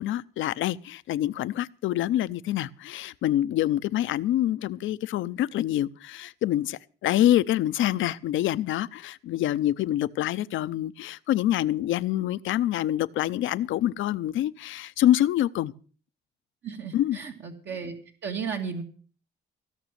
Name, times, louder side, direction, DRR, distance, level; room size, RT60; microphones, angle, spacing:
voice 1, 0.0-15.7 16.9-17.2, left 13 dB, 80° left, 0.7 m, -26 dB
voice 2, 16.6-17.9 18.2-18.8, right 6 dB, 60° right, 2.3 m, -34 dB
16.5 x 6.1 x 9.2 m
cardioid pair, 90°, 20 cm